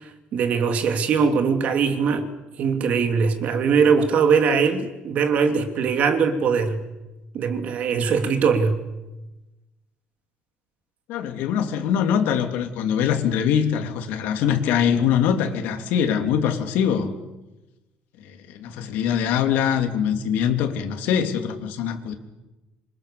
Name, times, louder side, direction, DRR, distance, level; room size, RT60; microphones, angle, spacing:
voice 1, 0.0-2.3 2.6-6.8 7.3-8.8, right 5 dB, 50° right, 2.9 m, -21 dB
voice 2, 11.1-17.1 18.2-22.1, left 8 dB, 85° left, 3.0 m, -23 dB
27.0 x 24.5 x 7.1 m
cardioid pair, 155°, 3 cm